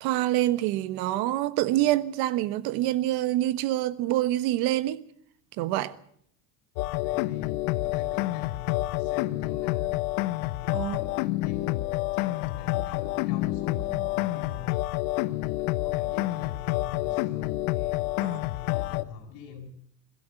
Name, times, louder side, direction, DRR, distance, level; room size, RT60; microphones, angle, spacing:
voice 1, 0.0-5.0 5.6-5.9 10.7-11.0 18.2-18.4, right 14 dB, 55° right, 1.3 m, -26 dB
sound 1, 6.8-19.0, left 18 dB, 75° left, 1.0 m, -28 dB
voice 2, 7.0-9.9 10.5-11.7 12.1-14.6 15.2-18.1 18.5-19.7, left 4 dB, 55° left, 7.2 m, -46 dB
22.5 x 13.5 x 9.0 m
cardioid pair, 150°, 44 cm